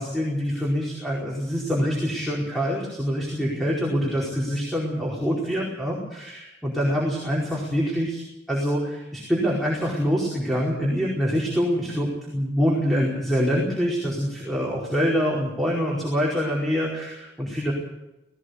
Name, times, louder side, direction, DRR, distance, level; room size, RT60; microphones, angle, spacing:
voice 1, 0.0-6.3 6.6-17.7, equal, ahead, -5 dB, 4.7 m, -25 dB
18.5 x 18.0 x 8.3 m, 0.93 s
head